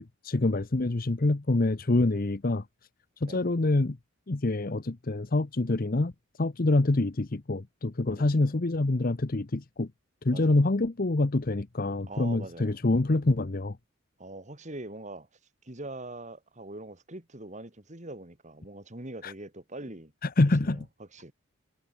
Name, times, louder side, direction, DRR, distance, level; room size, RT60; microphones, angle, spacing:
voice 1, 0.0-2.6 3.2-4.0 4.3-6.1 6.4-9.9 10.2-13.8 19.2-19.3 20.2-20.9, left 2 dB, 40° left, 0.8 m, -26 dB
voice 2, 10.3-10.6 12.1-12.8 14.2-15.3 15.6-20.1 20.6-21.3, right 2 dB, 35° right, 2.6 m, -43 dB
head